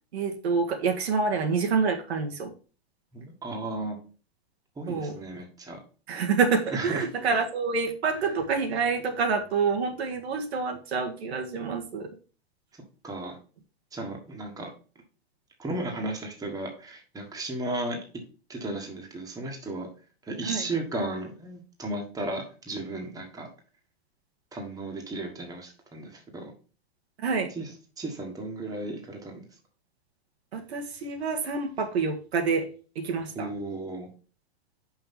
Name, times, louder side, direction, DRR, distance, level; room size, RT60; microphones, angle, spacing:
voice 1, 0.1-2.5 4.9-5.2 6.1-12.1 20.5-20.6 27.2-27.5 30.5-32.7 33.0-33.5, right 5 dB, 75° right, 3 dB, 1.8 m, -27 dB
voice 2, 3.1-4.0 4.8-5.8 6.7-7.1 13.0-13.4 13.9-14.7 15.6-18.0 18.5-19.9 20.2-23.5 24.5-26.5 27.5-27.7 28.0-29.3 33.3-34.1, right 2 dB, 10° right, 2 dB, 1.6 m, -34 dB
5.7 x 5.0 x 5.8 m, 0.37 s
hypercardioid pair, 135°, 32 cm